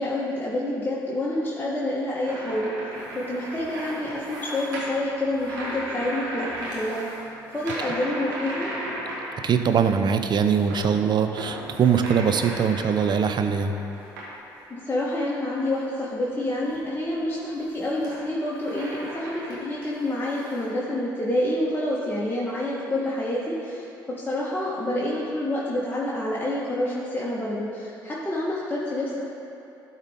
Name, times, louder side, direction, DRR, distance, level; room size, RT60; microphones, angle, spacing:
voice 1, 0.0-2.7 3.1-7.1 7.5-8.7 14.7-23.9 24.2-29.2, left 1 dB, 20° left, -6 dB, 1.3 m, -28 dB
sound 1, 2.2-9.9 10.2-14.7 15.2-15.9 16.4-20.7, right 1 dB, 85° right, 1.4 m, -36 dB
voice 2, 9.4-13.7, right 7 dB, 45° right, 7 dB, 0.6 m, -22 dB
12.0 x 4.0 x 3.6 m, 2.8 s
hypercardioid pair, 55°, 10 cm